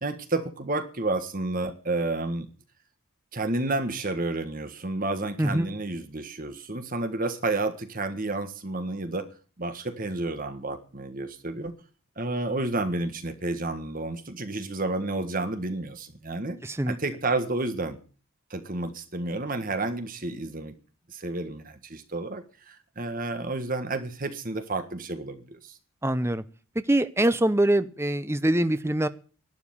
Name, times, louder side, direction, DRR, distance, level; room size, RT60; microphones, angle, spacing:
voice 1, 0.0-2.5 3.3-9.3 9.6-11.7 12.2-16.6 16.9-18.0 18.5-20.7 21.1-25.8, right 2 dB, 40° right, 9 dB, 1.5 m, -30 dB
voice 2, 5.4-5.7 16.6-17.0 26.0-26.4 26.8-29.1, right 1 dB, 10° right, 12 dB, 0.7 m, -24 dB
12.0 x 10.5 x 8.7 m, 0.38 s
head